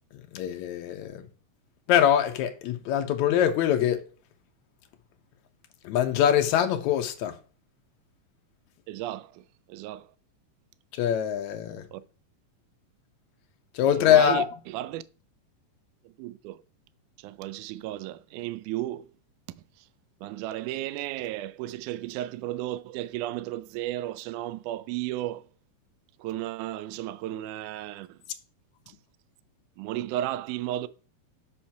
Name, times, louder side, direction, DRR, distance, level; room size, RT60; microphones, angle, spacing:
voice 1, 0.3-1.2 1.9-4.0 5.8-7.4 11.0-11.8 13.8-14.5, left 10 dB, 80° left, 1.7 m, -23 dB
voice 2, 8.9-10.1 11.9-12.0 13.9-15.0 16.0-16.6 17.2-19.1 19.8-19.9 20.2-25.5 26.2-28.2 29.8-30.9, right 14 dB, 85° right, 1.8 m, -34 dB
5.6 x 5.5 x 5.8 m
omnidirectional pair, 4.1 m